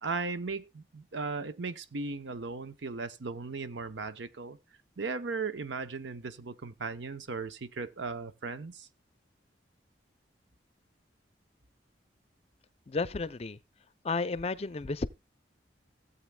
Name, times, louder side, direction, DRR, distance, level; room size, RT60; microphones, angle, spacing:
voice 1, 0.0-4.6 5.0-8.9, right 4 dB, 85° right, 0.7 m, -37 dB
voice 2, 12.9-13.6 14.0-15.1, left 3 dB, 35° left, 0.5 m, -32 dB
16.5 x 8.0 x 2.2 m
head